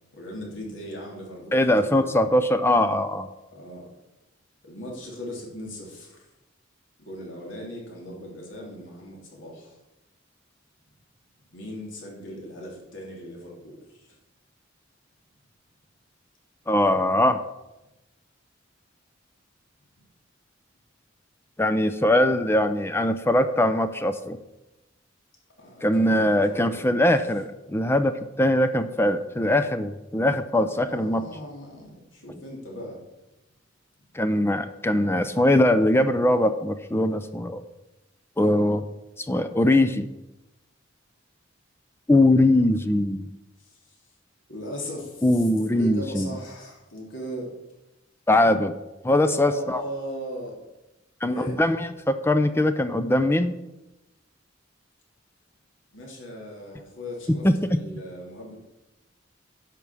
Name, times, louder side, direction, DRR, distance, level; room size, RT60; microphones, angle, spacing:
voice 1, 0.1-2.1 3.5-3.9 4.6-6.3 7.0-9.7 11.5-14.2 25.6-26.9 30.8-33.0 43.6-43.9 44.5-47.5 49.3-50.6 51.2-51.6 55.9-58.6, equal, 70° left, -2 dB, 3.1 m, -38 dB
voice 2, 1.5-3.3 16.7-17.4 21.6-24.4 25.8-28.1 28.4-31.2 34.1-37.6 38.4-38.8 39.3-40.1 42.1-43.3 45.2-46.3 48.3-48.7 49.0-49.8 51.2-51.8 52.1-53.5 57.4-57.8, left 1 dB, 10° left, 10 dB, 0.5 m, -21 dB
11.0 x 6.0 x 7.0 m, 0.97 s
head